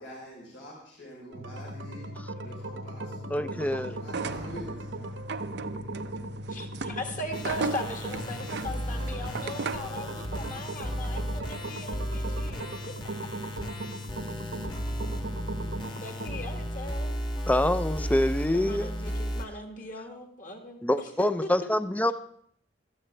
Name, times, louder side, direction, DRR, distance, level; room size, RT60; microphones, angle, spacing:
voice 1, 0.0-4.9 8.4-8.6 8.9-11.2, equal, 85° left, -3 dB, 3.9 m, -47 dB
sound 1, 1.3-16.7, right 1 dB, 85° right, 1.2 m, -38 dB
voice 2, 3.3-3.9 17.5-18.9 20.8-22.1, left 1 dB, 10° left, 13 dB, 0.4 m, -26 dB
sound 2, 4.0-10.0, right 4 dB, 65° right, 0.6 m, -37 dB
voice 3, 6.5-13.4 16.0-17.2 17.4-18.1 18.5-21.5, left 1 dB, 45° left, 3 dB, 1.9 m, -39 dB
sound 3, 7.3-19.4, equal, 25° left, 1.3 m, -35 dB
16.5 x 13.0 x 3.3 m, 0.65 s
head